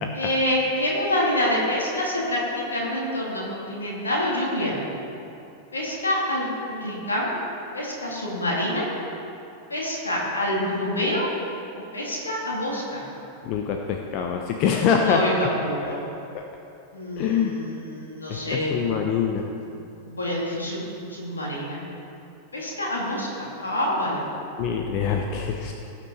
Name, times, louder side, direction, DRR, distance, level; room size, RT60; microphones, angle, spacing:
voice 1, 0.1-4.8 5.7-7.3 7.7-8.9 9.7-11.3 11.9-13.0 15.0-16.0 16.9-18.7 19.7-21.8 22.5-24.2, left 1 dB, 75° left, -4 dB, 2.2 m, -27 dB
voice 2, 13.4-15.2 15.8-16.0 16.3-16.4 17.2-17.6 18.3-19.5 24.6-25.7, left 7 dB, 40° left, 3 dB, 0.7 m, -25 dB
17.5 x 6.1 x 4.3 m, 2.7 s
figure-of-eight pair, 90°, 0 cm